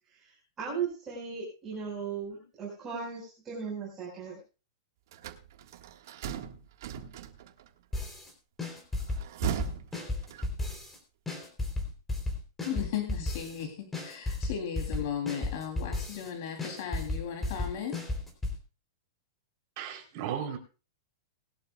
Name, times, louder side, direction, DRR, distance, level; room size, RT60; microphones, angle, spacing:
voice 1, 0.1-4.4, right 6 dB, 15° right, 5.1 m, -37 dB
sound 1, 5.1-7.7 9.0-10.8, right 10 dB, 60° right, 1.7 m, -38 dB
sound 2, 7.9-8.3 8.6-11.0 11.3-13.6 13.9-16.3 16.6-18.6, left 2 dB, 10° left, 3.5 m, -33 dB
voice 2, 12.6-18.0, left 8 dB, 50° left, 3.2 m, -36 dB
voice 3, 19.8-20.6, right 9 dB, 40° right, 3.6 m, -35 dB
20.5 x 11.5 x 2.4 m
supercardioid pair, 160°, 2 cm